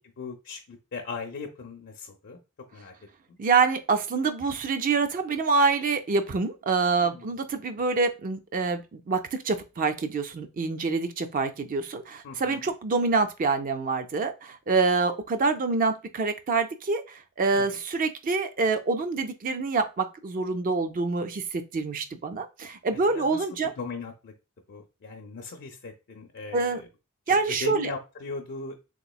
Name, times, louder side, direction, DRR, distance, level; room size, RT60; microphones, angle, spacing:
voice 1, 0.2-2.4 2.7-2.9 3.3-3.4 7.0-7.3 12.2-12.7 17.5-17.7 22.9-24.3 24.7-26.9 27.3-28.7, left 4 dB, 50° left, 2 dB, 0.5 m, -38 dB
voice 2, 3.4-23.7 26.5-26.8 27.3-27.9, right 4 dB, 40° right, 8 dB, 0.4 m, -26 dB
3.3 x 3.0 x 2.3 m, 0.28 s
head